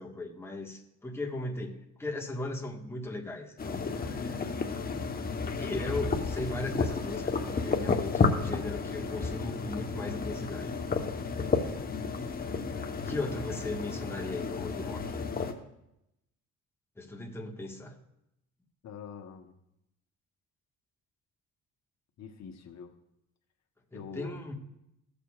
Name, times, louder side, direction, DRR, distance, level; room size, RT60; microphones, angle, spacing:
voice 1, 0.0-4.5 5.4-10.7 12.4-15.2 17.0-17.9 23.9-24.5, left 2 dB, 10° left, -1 dB, 1.5 m, -38 dB
sound 1, 3.6-15.5, left 4 dB, 30° left, 1.0 m, -32 dB
voice 2, 18.8-19.5 22.2-22.9 23.9-24.4, left 6 dB, 60° left, 4 dB, 1.1 m, -44 dB
16.0 x 6.7 x 2.4 m, 0.83 s
cardioid pair, 90°, 30 cm